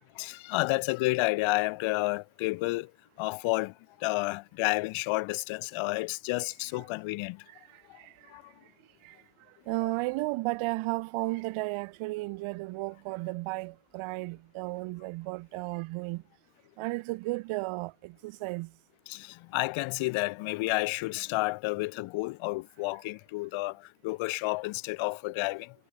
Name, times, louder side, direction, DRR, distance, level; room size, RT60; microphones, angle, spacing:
voice 1, 0.2-2.9 3.2-3.7 4.0-7.4 8.3-8.4 19.1-25.7, left 22 dB, 70° left, 0.5 m, -30 dB
voice 2, 7.5-8.3 9.0-9.2 9.7-16.2 16.8-18.7, right 22 dB, 75° right, 0.6 m, -34 dB
cardioid pair, 160°, 50 cm